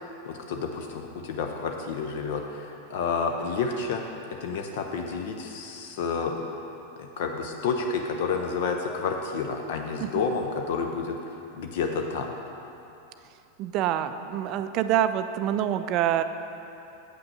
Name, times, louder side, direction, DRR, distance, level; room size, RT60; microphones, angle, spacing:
voice 1, 0.2-4.0 4.4-6.4 7.0-11.2 11.5-12.3, left 5 dB, 55° left, 3 dB, 0.6 m, -30 dB
voice 2, 13.6-16.2, right 11 dB, 40° right, 10 dB, 0.3 m, -26 dB
7.7 x 5.8 x 6.4 m, 2.9 s
figure-of-eight pair, 90°, 0 cm